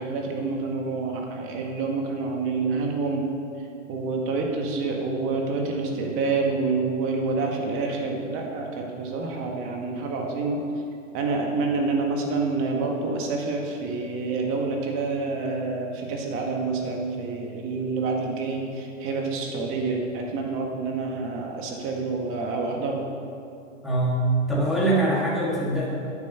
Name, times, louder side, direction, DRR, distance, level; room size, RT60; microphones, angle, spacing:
voice 1, 0.0-3.3 3.9-10.6 11.1-23.0, right 3 dB, 35° right, 1 dB, 1.9 m, -27 dB
voice 2, 23.8-24.2 24.5-25.9, right 1 dB, ahead, -8 dB, 2.4 m, -23 dB
10.0 x 8.1 x 6.8 m, 2.5 s
hypercardioid pair, 135°, 39 cm